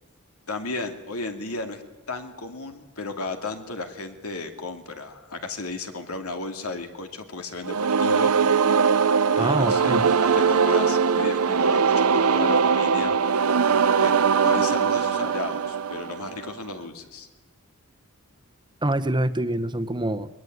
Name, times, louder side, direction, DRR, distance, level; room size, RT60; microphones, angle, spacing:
voice 1, 0.5-1.8 2.1-8.3 9.3-13.2 14.0-14.1 14.4-17.3, left 3 dB, 90° left, 6 dB, 2.6 m, -34 dB
sound 1, 7.6-16.5, right 6 dB, 85° right, 0.8 m, -21 dB
voice 2, 9.4-10.0 18.8-20.3, right 1 dB, 20° right, 13 dB, 1.0 m, -25 dB
21.5 x 20.5 x 9.5 m, 1.1 s
head